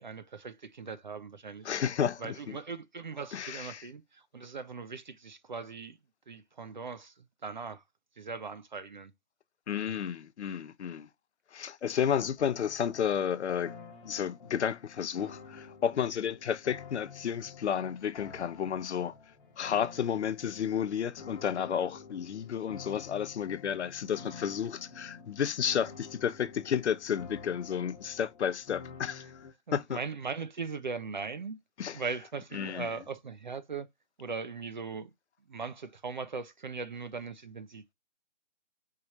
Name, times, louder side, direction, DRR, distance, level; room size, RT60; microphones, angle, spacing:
voice 1, 0.0-1.7 2.2-6.0 6.3-7.8 8.2-9.1 29.7-31.6 31.9-33.9 34.2-35.1 35.5-37.9, right 5 dB, 40° right, 0.4 m, -39 dB
voice 2, 1.6-2.6 3.3-3.8 9.7-11.1 11.5-13.7 14.0-19.1 19.6-30.0 31.8-32.0 32.5-32.9, left 8 dB, 70° left, 0.6 m, -32 dB
sound 1, 12.4-29.5, left 5 dB, 25° left, 1.6 m, -50 dB
4.8 x 3.0 x 2.7 m
hypercardioid pair, 165°, 36 cm